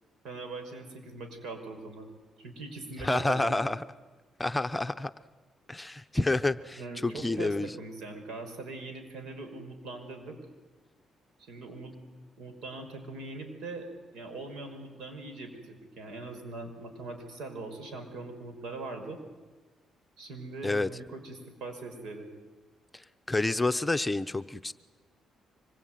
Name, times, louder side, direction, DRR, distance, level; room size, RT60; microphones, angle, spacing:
voice 1, 0.2-2.1 2.4-3.6 6.7-10.4 11.4-11.9 12.4-19.2 20.2-22.3, right 3 dB, 80° right, 6 dB, 5.4 m, -41 dB
voice 2, 3.0-3.8 4.4-5.1 5.7-7.7 20.6-20.9 22.9-24.7, left 2 dB, 15° left, 10 dB, 0.8 m, -29 dB
25.0 x 22.0 x 9.3 m, 1.3 s
cardioid pair, 90°, 0 cm